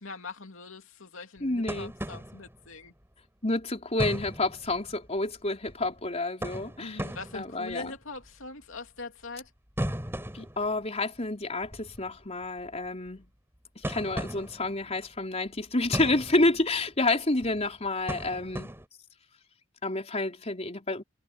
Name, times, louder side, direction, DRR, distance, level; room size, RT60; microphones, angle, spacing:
voice 1, 0.0-2.9 6.8-9.5, left 3 dB, 80° left, 2.7 m, -42 dB
voice 2, 1.4-1.9 3.4-7.0 7.3-7.9 10.3-13.3 13.8-18.8 19.8-21.0, left 2 dB, 30° left, 4.4 m, -29 dB
sound 1, 1.4-2.8 4.0-5.3 5.7-6.0 6.4-7.9 8.2-8.3 9.8-11.2 11.6-13.1 13.8-15.1 15.6-16.9 17.4-18.9, equal, 10° right, 6.5 m, -37 dB
head